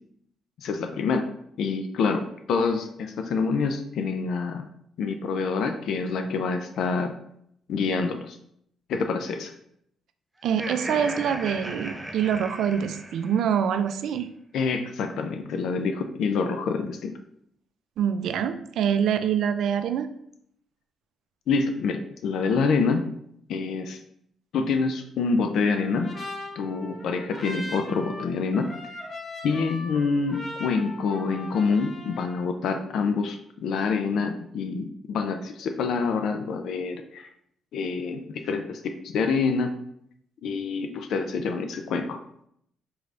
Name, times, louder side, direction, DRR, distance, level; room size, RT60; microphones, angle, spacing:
voice 1, 0.6-1.3 1.6-4.6 5.0-7.1 7.7-8.4 8.9-9.5 14.5-17.1 21.5-23.1 23.5-24.0 24.5-26.1 26.6-28.7 29.4-37.3 37.7-39.8 40.4-42.2, left 4 dB, 75° left, 6 dB, 0.4 m, -26 dB
Laughter, 10.4-13.6, right 1 dB, 5° right, 0.6 m, -36 dB
voice 2, 10.4-14.3 18.0-20.1, right 8 dB, 75° right, 10 dB, 0.3 m, -25 dB
Trumpet, 25.7-32.4, left 1 dB, 35° left, 0.9 m, -39 dB
4.6 x 3.2 x 2.5 m, 0.71 s
cardioid pair, 90°, 0 cm